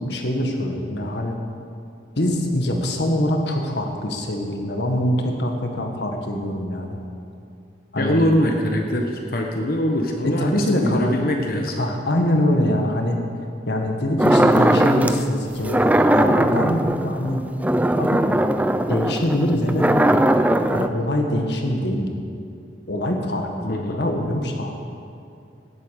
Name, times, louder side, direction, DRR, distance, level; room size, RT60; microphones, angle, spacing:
voice 1, 0.0-1.4 2.1-7.0 7.9-8.2 10.2-11.1 11.8-13.2 13.7-17.4 18.0-18.2 18.9-20.2 20.7-22.1 22.9-24.7, left 1 dB, 70° left, 2 dB, 1.7 m, -23 dB
voice 2, 8.0-11.8 23.7-24.0, equal, 50° left, 1 dB, 1.2 m, -23 dB
sound 1, 14.2-15.2 15.6-20.9, right 1 dB, 10° right, 0.4 m, -19 dB
17.5 x 8.4 x 6.5 m, 2.5 s
head